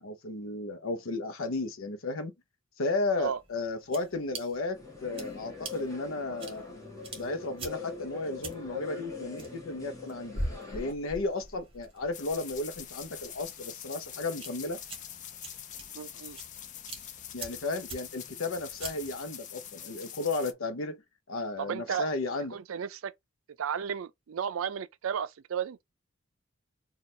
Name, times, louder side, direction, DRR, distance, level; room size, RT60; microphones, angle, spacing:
voice 1, 0.0-2.3 2.8-6.6 7.2-10.4 10.7-14.8 17.3-21.0 21.3-22.6, left 3 dB, 75° left, 0.7 m, -34 dB
sound 1, 3.1-19.2, right 2 dB, 25° right, 1.2 m, -45 dB
sound 2, 4.7-10.9, left 5 dB, 15° left, 1.1 m, -42 dB
sound 3, 12.1-20.5, left 9 dB, 35° left, 0.4 m, -44 dB
voice 2, 15.9-16.4 21.6-22.1 22.5-23.1 23.6-25.8, right 8 dB, 75° right, 0.4 m, -33 dB
3.2 x 2.4 x 4.1 m
head